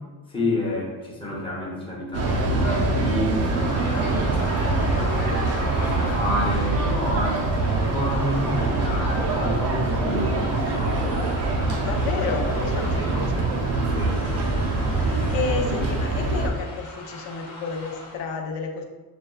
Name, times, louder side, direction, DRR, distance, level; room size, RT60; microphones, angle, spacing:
voice 1, 0.3-5.2 5.5-7.5 7.8-10.9 13.0-13.1 13.8-14.2, left 1 dB, 10° left, -5 dB, 0.7 m, -29 dB
sound 1, 2.1-16.5, right 2 dB, 35° right, 0.4 m, -24 dB
sound 2, 3.4-18.2, left 1 dB, 45° left, 1.0 m, -37 dB
voice 2, 11.8-13.8 14.9-18.8, left 5 dB, 75° left, 3 dB, 0.7 m, -31 dB
6.5 x 2.3 x 2.3 m, 1.2 s
cardioid pair, 175°, 47 cm